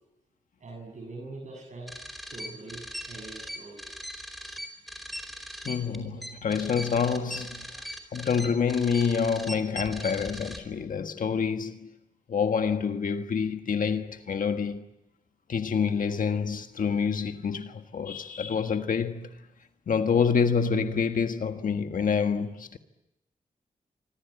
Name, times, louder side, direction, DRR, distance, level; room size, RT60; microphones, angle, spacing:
voice 1, 0.6-2.0 2.3-3.9, right 2 dB, 60° right, 6.7 m, -43 dB
sound 1, 1.9-10.6, equal, ahead, 4.6 m, -39 dB
voice 2, 5.6-7.8 8.1-11.9 12.3-14.8 15.5-19.3 19.9-22.8, left 6 dB, 70° left, 1.6 m, -27 dB
27.0 x 25.0 x 8.5 m
cardioid pair, 85°, 14 cm